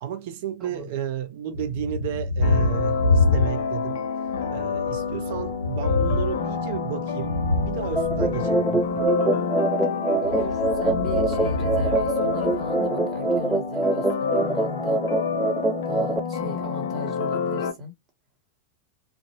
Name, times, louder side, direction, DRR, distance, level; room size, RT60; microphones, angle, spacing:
voice 1, 0.0-4.0 4.5-7.4 7.7-9.0, right 10 dB, 50° right, 0.6 m, -32 dB
Thunder, 1.5-4.0 4.3-9.1 10.2-12.8, left 2 dB, 70° right, 1.1 m, -27 dB
sound 1, 2.4-17.7, left 6 dB, 60° left, 0.6 m, -28 dB
sound 2, 8.0-16.2, right 2 dB, 5° right, 0.4 m, -25 dB
voice 2, 10.2-15.0 15.8-17.9, left 1 dB, 30° right, 1.5 m, -37 dB
3.6 x 2.5 x 3.1 m
figure-of-eight pair, 90°, 0 cm